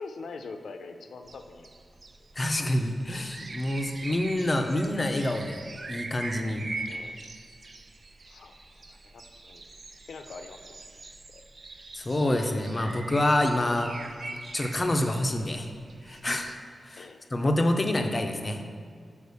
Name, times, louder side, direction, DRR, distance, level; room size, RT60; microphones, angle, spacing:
voice 1, 0.0-1.7 6.8-7.2 8.3-9.6 10.1-10.9 11.3-11.4 17.0-17.2, left 4 dB, 75° left, 6 dB, 0.6 m, -43 dB
sound 1, 1.2-16.5, right 3 dB, 35° right, 0.4 m, -42 dB
voice 2, 2.3-5.6 5.9-6.7 12.0-13.9 14.5-15.7 16.0-16.5 16.8-18.6, left 1 dB, 25° left, 5 dB, 0.6 m, -27 dB
6.5 x 5.0 x 6.9 m, 2.2 s
wide cardioid pair, 165°, 0 cm